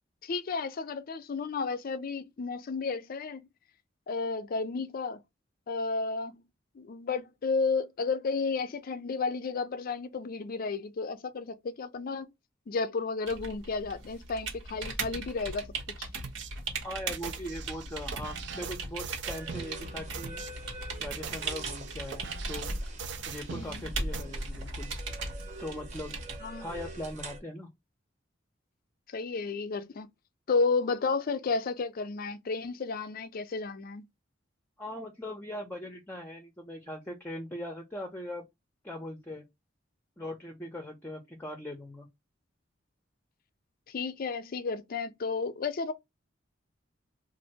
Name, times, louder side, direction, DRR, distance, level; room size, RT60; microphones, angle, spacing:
voice 1, 0.2-3.5 4.1-5.2 5.7-6.4 6.8-12.3 12.7-15.6 16.0-16.1 23.5-23.8 26.4-26.7 29.1-30.1 30.5-34.1 43.9-45.9, left 4 dB, 50° left, 0.4 m, -32 dB
sound 1, 13.3-26.4, right 3 dB, 80° right, 1.2 m, -39 dB
sound 2, 16.2-16.5 17.1-19.7 20.1-20.5 21.0-23.7 24.1-24.2, right 6 dB, 65° right, 0.5 m, -41 dB
voice 2, 16.8-20.5 21.0-22.7 23.3-24.9 25.6-26.2 26.6-27.7 34.8-38.5 38.8-39.4 40.2-42.1, left 1 dB, 10° left, 0.7 m, -40 dB
sound 3, 19.2-27.4, right 1 dB, 40° right, 0.9 m, -41 dB
2.7 x 2.5 x 4.2 m
head